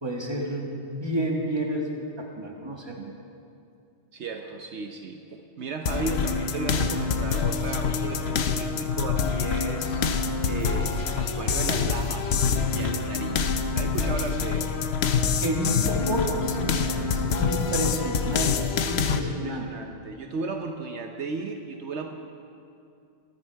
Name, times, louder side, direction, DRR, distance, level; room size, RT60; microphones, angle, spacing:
voice 1, 0.0-3.0 15.4-18.6 18.9-19.7, right 1 dB, 20° right, -1 dB, 1.8 m, -30 dB
voice 2, 4.1-10.0 10.4-14.7 19.1-22.1, right 4 dB, 70° right, 4 dB, 1.1 m, -35 dB
sound 1, 5.9-19.2, left 5 dB, 65° left, 1.0 m, -26 dB
23.0 x 9.7 x 4.6 m, 2.5 s
omnidirectional pair, 1.2 m